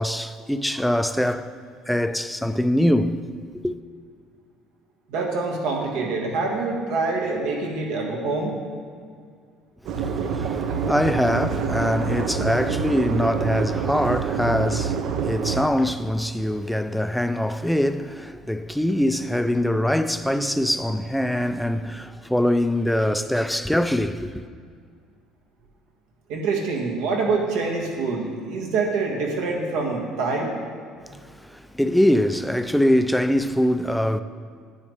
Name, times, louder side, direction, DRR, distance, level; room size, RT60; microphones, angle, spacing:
voice 1, 0.0-1.5 1.9-3.8 9.9-24.4 31.0-34.2, left 1 dB, ahead, 0.4 m, -23 dB
voice 2, 5.1-8.6 26.3-30.5, right 3 dB, 85° right, 1.7 m, -25 dB
sound 1, 9.9-15.7, right 6 dB, 65° right, 0.6 m, -26 dB
10.0 x 8.6 x 3.4 m
cardioid pair, 105°, 0 cm